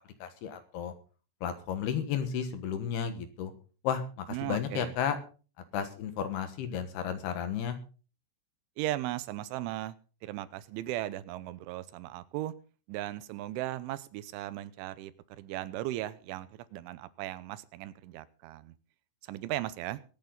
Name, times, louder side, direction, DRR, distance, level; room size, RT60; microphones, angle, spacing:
voice 1, 0.2-0.9 1.4-3.5 3.8-5.2 5.7-7.8, left 8 dB, 65° left, 9 dB, 3.1 m, -33 dB
voice 2, 4.3-4.9 8.8-10.0 10.2-12.5 12.9-18.7 19.3-20.0, right 15 dB, 85° right, 15 dB, 3.2 m, -37 dB
22.5 x 9.4 x 3.9 m, 0.37 s
omnidirectional pair, 5.4 m